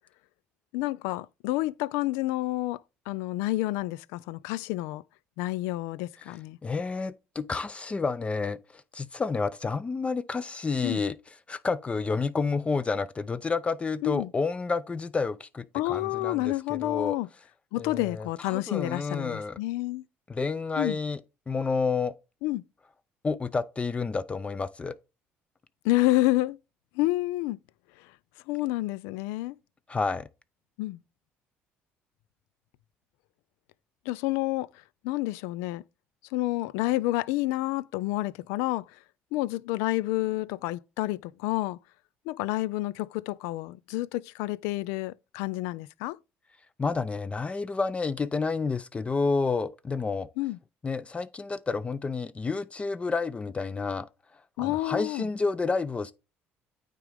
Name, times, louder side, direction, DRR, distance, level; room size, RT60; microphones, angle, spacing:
voice 1, 0.7-5.0 5.4-6.6 10.8-11.0 14.0-14.3 15.7-17.3 17.7-20.0 20.8-21.0 22.4-22.6 25.8-26.6 26.9-27.6 28.5-29.6 30.8-31.0 34.1-34.7 35.0-35.8 36.3-38.8 39.3-41.8 42.3-46.2 50.4-50.6 54.6-55.3, left 18 dB, 90° left, 0.4 m, -29 dB
voice 2, 6.6-11.2 11.5-17.2 17.8-19.6 20.3-21.2 21.5-22.1 23.2-24.9 29.9-30.3 46.8-50.3 50.8-54.1 54.6-56.1, left 4 dB, 25° left, 0.5 m, -30 dB
9.2 x 3.8 x 3.4 m
supercardioid pair, 85°, 5 cm